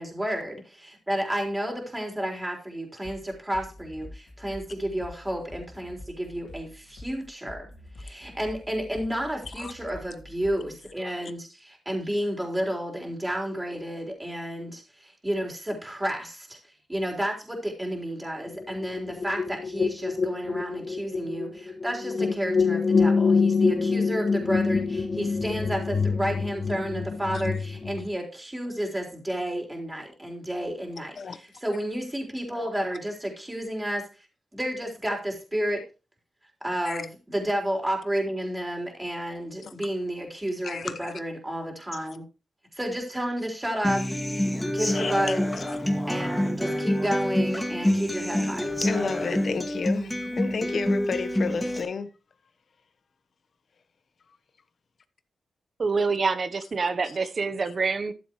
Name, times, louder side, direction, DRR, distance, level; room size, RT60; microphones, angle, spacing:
voice 1, 0.0-7.7 8.0-16.6 16.9-34.0 34.5-35.8 36.6-42.2 42.7-44.0 44.7-45.4 46.1-48.7, equal, 15° right, 3.9 m, -31 dB
sound 1, 3.0-10.9, left 1 dB, 80° left, 3.1 m, -46 dB
sound 2, 18.5-28.1, left 4 dB, 45° left, 1.3 m, -26 dB
voice 2, 40.6-41.1 44.9-45.1 45.7-45.8 48.8-52.1, left 5 dB, 65° left, 1.1 m, -32 dB
Human voice / Acoustic guitar, 43.8-51.8, left 1 dB, 10° left, 2.0 m, -27 dB
voice 3, 55.8-58.1, right 4 dB, 50° right, 1.0 m, -26 dB
13.0 x 7.6 x 3.1 m
cardioid pair, 70°, 0 cm